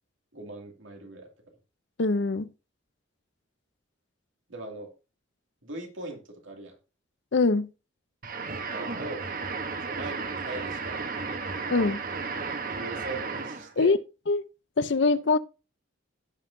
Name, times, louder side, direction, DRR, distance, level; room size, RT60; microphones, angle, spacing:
voice 1, 0.3-1.5 4.5-4.9 5.6-6.8 8.6-9.3 9.8-11.4 12.7-14.0, right 2 dB, 70° right, 2.3 m, -40 dB
voice 2, 2.0-2.5 7.3-7.7 11.7-12.0 13.8-14.0 14.3-14.4 14.8-15.4, left 3 dB, 60° left, 0.6 m, -23 dB
sound 1, 8.2-13.7, right 4 dB, 45° right, 0.9 m, -34 dB
16.0 x 5.6 x 2.6 m
head